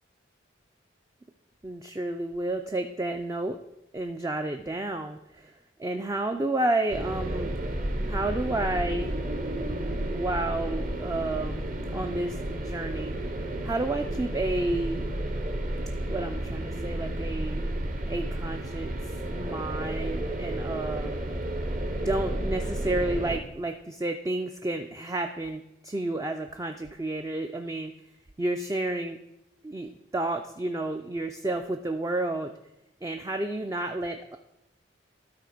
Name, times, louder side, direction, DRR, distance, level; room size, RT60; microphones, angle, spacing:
voice 1, 1.6-3.6 3.9-5.5 5.8-7.5 8.1-9.2 10.1-13.1 13.6-15.1 16.1-17.7 18.1-18.9 19.3-21.3 22.0-27.9 28.4-29.2 29.6-32.5 33.0-34.4, right 2 dB, 15° right, 5 dB, 0.3 m, -31 dB
sound 1, 6.9-23.4, right 1 dB, 45° right, 0.9 m, -32 dB
12.5 x 4.2 x 5.0 m, 0.87 s
head